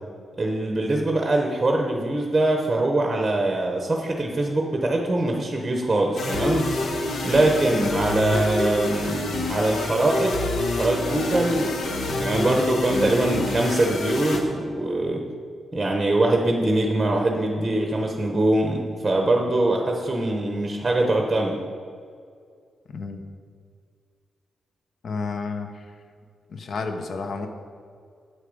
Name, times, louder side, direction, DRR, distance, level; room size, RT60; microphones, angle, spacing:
voice 1, 0.4-6.7 7.2-10.4 10.8-15.2 15.7-21.6, right 2 dB, 15° right, 1 dB, 0.9 m, -23 dB
sound 1, 6.2-14.4, left 2 dB, 85° left, 1.2 m, -27 dB
voice 2, 22.9-23.2 25.0-25.8 26.5-27.5, left 4 dB, 50° left, 6 dB, 0.9 m, -31 dB
8.2 x 8.0 x 5.3 m, 2.2 s
wide cardioid pair, 165°, 0 cm